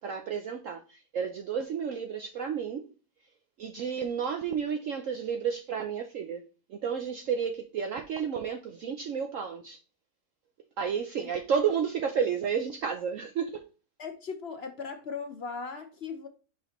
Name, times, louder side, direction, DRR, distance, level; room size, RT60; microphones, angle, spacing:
voice 1, 0.0-2.9 3.6-9.8 10.8-13.7, right 7 dB, 60° right, 0.9 m, -31 dB
voice 2, 14.0-16.3, left 5 dB, 45° left, 0.9 m, -38 dB
6.1 x 5.2 x 3.0 m
omnidirectional pair, 1.8 m